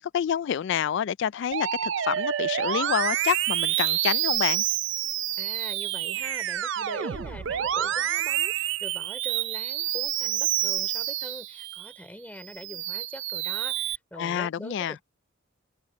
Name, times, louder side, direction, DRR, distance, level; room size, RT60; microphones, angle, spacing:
voice 1, 0.0-4.6 14.2-15.0, left 9 dB, 65° left, 0.3 m, -28 dB
Musical instrument, 1.5-11.9 12.4-14.0, right 12 dB, 65° right, 0.4 m, -28 dB
voice 2, 5.4-15.0, left 1 dB, 10° left, 3.1 m, -43 dB
head